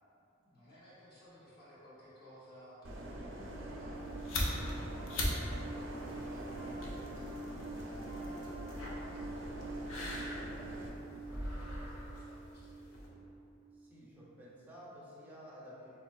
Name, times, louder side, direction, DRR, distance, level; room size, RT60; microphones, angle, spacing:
voice 1, 0.0-4.2 4.9-10.1 10.5-13.3, equal, 50° left, -9 dB, 0.8 m, -58 dB
Piano, 2.8-14.3, right 2 dB, 15° left, 1.1 m, -47 dB
sound 1, 2.8-10.9, right 1 dB, 65° right, 0.4 m, -45 dB
sound 2, 3.9-13.1, left 1 dB, 75° left, 0.5 m, -41 dB
voice 2, 13.7-16.0, equal, 10° right, -7 dB, 0.5 m, -52 dB
4.1 x 2.3 x 2.2 m, 2.7 s
head